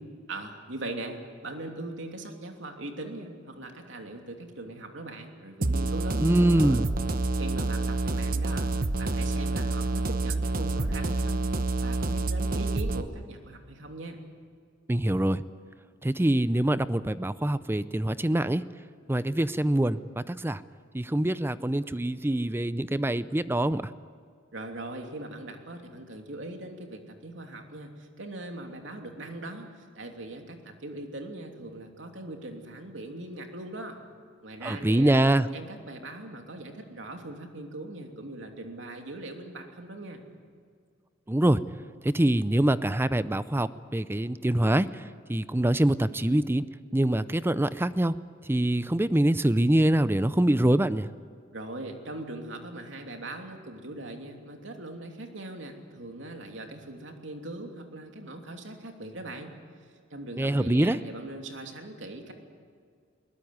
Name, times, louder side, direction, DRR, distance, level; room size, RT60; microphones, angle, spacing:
voice 1, 0.3-6.8 7.4-8.7 9.0-11.5 11.8-14.2 24.5-34.0 34.4-35.1 35.5-40.2 51.5-59.6 60.1-62.3, right 2 dB, 75° right, 3 dB, 3.0 m, -40 dB
sound 1, 5.6-13.0, right 2 dB, 50° right, 1.0 m, -28 dB
voice 2, 6.2-6.8 14.9-15.4 16.0-18.6 19.1-20.6 20.9-23.9 34.6-35.5 41.3-41.6 42.0-46.7 46.9-48.1 48.4-51.1 60.4-61.0, right 1 dB, 10° right, 15 dB, 0.5 m, -24 dB
21.5 x 19.5 x 9.5 m, 2.1 s
head